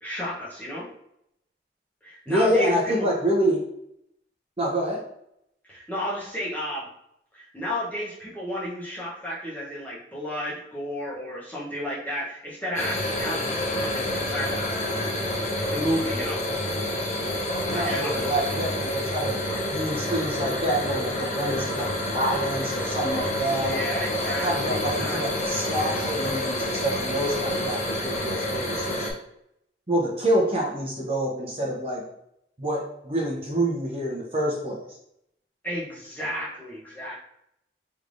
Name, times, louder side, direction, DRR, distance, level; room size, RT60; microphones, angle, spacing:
voice 1, 0.0-0.9 2.0-3.1 5.7-6.9 7.3-15.0 15.5-16.4 17.6-18.3 23.5-25.4 35.6-37.2, equal, 10° left, -7 dB, 0.8 m, -32 dB
voice 2, 2.3-3.6 4.6-5.0 17.7-19.4 19.7-23.8 24.2-29.1 29.9-32.0 32.6-34.8, right 1 dB, 35° right, -3 dB, 0.7 m, -27 dB
sound 1, 12.8-29.1, left 1 dB, 40° left, 0.6 m, -28 dB
3.4 x 3.2 x 2.5 m, 0.77 s
head